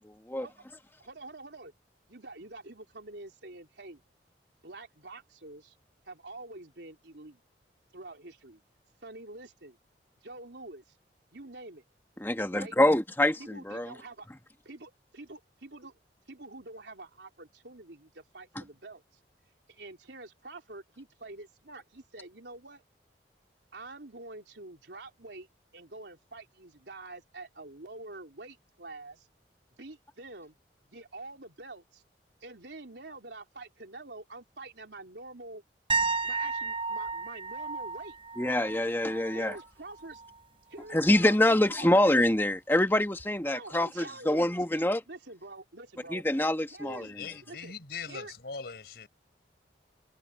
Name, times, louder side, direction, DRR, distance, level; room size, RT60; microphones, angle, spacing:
voice 1, 1.0-1.7 2.1-4.0 4.6-5.8 6.0-7.4 7.9-8.6 9.0-9.8 10.2-10.9 11.3-11.8 12.5-12.8 13.4-14.3 14.6-15.9 16.3-19.0 19.7-22.8 23.7-25.5 25.7-29.3 29.8-30.6 30.9-32.0 32.4-35.6 36.2-38.2 39.3-40.2 40.7-41.9 43.5-44.8 45.1-46.2 46.7-47.2 47.5-47.7 48.1-48.3, right 2 dB, 80° right, 3.5 m, -46 dB
voice 2, 12.2-13.9 38.4-39.6 40.9-45.0 46.1-47.1, left 1 dB, 10° left, 1.2 m, -25 dB
sound 1, 35.9-39.6 40.0-40.3 43.2-43.3, right 4 dB, 30° right, 4.1 m, -33 dB
voice 3, 46.8-49.1, left 5 dB, 65° left, 4.4 m, -41 dB
head